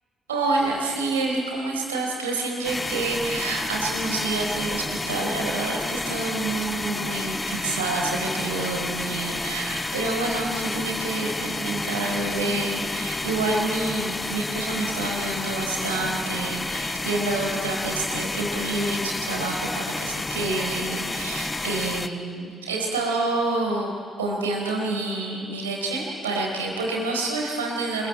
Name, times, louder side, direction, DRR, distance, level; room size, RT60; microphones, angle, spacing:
voice 1, 0.3-23.9 24.2-28.1, right 2 dB, 80° right, 0 dB, 4.4 m, -28 dB
sound 1, 2.6-22.1, left 2 dB, 25° left, 1.3 m, -30 dB
27.5 x 22.5 x 8.7 m, 2.3 s
figure-of-eight pair, 40°, 0 cm